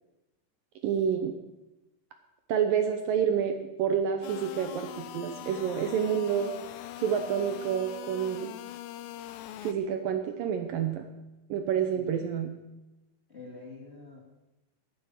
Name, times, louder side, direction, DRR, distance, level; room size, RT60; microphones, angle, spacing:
voice 1, 0.8-1.3 2.5-6.5 7.0-8.5 9.6-11.1 11.5-12.5, right 8 dB, 70° right, 7 dB, 2.4 m, -28 dB
sound 1, 4.2-9.7, left 12 dB, 80° left, 2.5 m, -42 dB
voice 2, 11.9-12.3 13.3-14.2, left 3 dB, 20° left, -2 dB, 2.6 m, -46 dB
16.5 x 10.0 x 6.5 m, 1.0 s
omnidirectional pair, 4.6 m